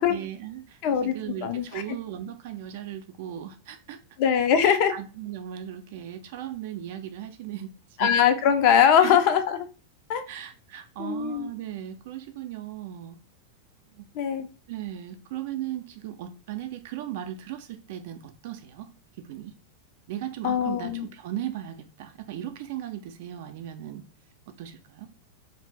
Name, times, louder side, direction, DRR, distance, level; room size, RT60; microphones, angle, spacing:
voice 1, 0.0-4.0 4.6-8.1 9.0-9.2 10.3-13.2 13.9-14.0 14.7-18.9 19.3-19.5 20.1-24.0 24.6-25.1, right 11 dB, 50° right, 0.4 m, -37 dB
voice 2, 0.8-1.1 1.4-1.8 4.2-4.9 8.0-9.6 10.1-10.2 11.0-11.5 14.1-14.5 20.4-21.1, left 8 dB, 45° left, 0.4 m, -21 dB
2.5 x 2.5 x 3.3 m
figure-of-eight pair, 90°, 0 cm